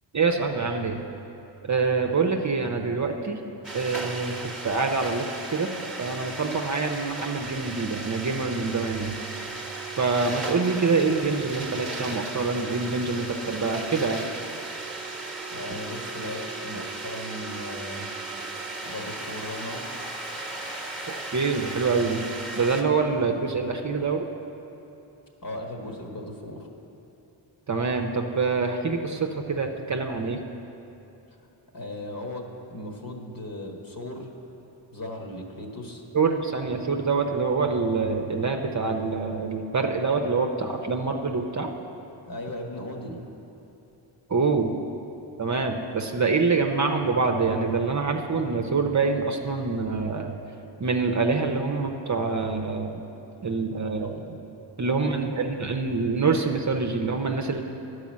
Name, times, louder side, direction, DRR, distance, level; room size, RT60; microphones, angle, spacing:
voice 1, 0.1-1.0 1.6-3.4 3.7-5.7 6.0-9.2 10.0-14.2 15.7-15.8 21.3-22.2 22.5-24.3 27.7-30.4 36.1-41.7 44.3-44.7 45.4-50.3 50.8-53.0 53.4-54.2 54.8-57.6, right 4 dB, 35° right, 3 dB, 0.8 m, -25 dB
sound 1, 3.6-22.8, right 3 dB, ahead, 1.3 m, -36 dB
voice 2, 15.5-18.1 18.8-20.0 25.4-26.7 31.7-32.4 32.7-34.3 34.9-36.0 42.2-43.2 54.0-54.2 54.9-55.2, left 1 dB, 45° left, 1 dB, 1.5 m, -37 dB
Domestic sounds home sounds, 18.4-23.3, left 3 dB, 80° left, 1.0 m, -46 dB
10.5 x 4.9 x 7.4 m, 2.9 s
cardioid pair, 55°, 49 cm